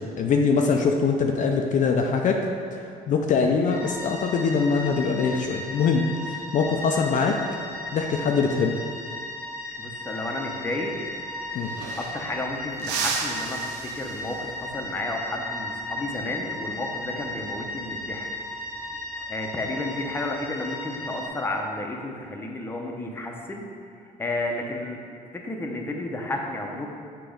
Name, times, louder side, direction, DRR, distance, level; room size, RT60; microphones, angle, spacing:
voice 1, 0.0-2.4 2.8-7.3 7.9-8.8 11.5-11.7, left 5 dB, 50° left, 2 dB, 0.5 m, -23 dB
voice 2, 3.4-3.8 9.8-10.9 12.0-18.3 19.3-23.7 24.2-25.0 25.3-26.9, left 2 dB, 15° left, 1 dB, 0.7 m, -32 dB
sound 1, 3.7-21.3, left 1 dB, 5° right, 1.3 m, -36 dB
sound 2, 11.2-11.3 11.5-12.4 12.8-14.6 17.1-17.3 18.8-19.2, right 6 dB, 90° right, 0.6 m, -33 dB
6.9 x 3.0 x 5.0 m, 2.3 s
cardioid pair, 110°, 17 cm